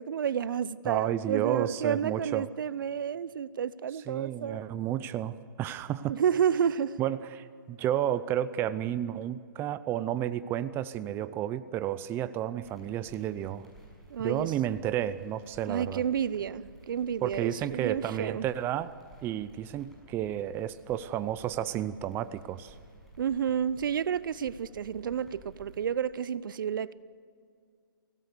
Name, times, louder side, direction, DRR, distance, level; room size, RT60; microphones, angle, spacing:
voice 1, 0.0-4.6 6.1-7.0 14.1-14.5 15.7-18.5 23.2-26.9, right 8 dB, 65° right, 0.7 m, -30 dB
voice 2, 0.8-2.5 4.1-6.1 7.0-13.7 14.2-16.0 17.2-18.9 19.2-22.7, right 11 dB, 20° right, 0.6 m, -32 dB
sound 1, 12.6-25.9, right 1 dB, ahead, 6.7 m, -54 dB
24.5 x 17.5 x 6.7 m
hypercardioid pair, 145°, 12 cm